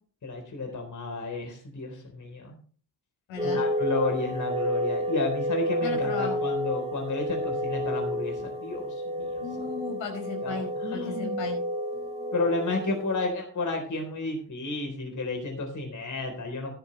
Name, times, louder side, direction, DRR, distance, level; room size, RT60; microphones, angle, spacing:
voice 1, 0.2-2.5 3.4-9.7 10.4-11.4 12.3-16.7, left 3 dB, 40° left, 3 dB, 4.0 m, -32 dB
voice 2, 3.3-3.6 5.8-6.4 9.4-11.6 11.9-12.3, left 5 dB, 75° left, 1 dB, 5.5 m, -36 dB
sound 1, 3.4-13.3, equal, 15° right, 2.6 m, -30 dB
12.5 x 11.5 x 3.3 m, 0.42 s
supercardioid pair, 65°, 46 cm